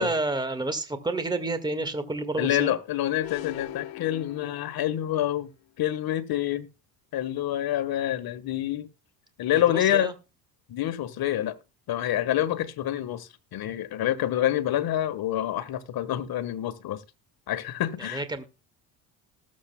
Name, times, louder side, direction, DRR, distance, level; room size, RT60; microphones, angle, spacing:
voice 1, 0.0-2.7 9.5-10.1 18.0-18.4, right 2 dB, 10° right, 1.7 m, -30 dB
voice 2, 2.4-5.5 5.8-6.7 7.1-8.9 9.4-10.1 10.7-11.6 11.9-17.0 17.5-18.2, left 12 dB, 55° left, 1.4 m, -27 dB
sound 1, 3.2-5.2, left 16 dB, 85° left, 1.1 m, -41 dB
19.5 x 7.6 x 2.2 m
supercardioid pair, 95°, 45 cm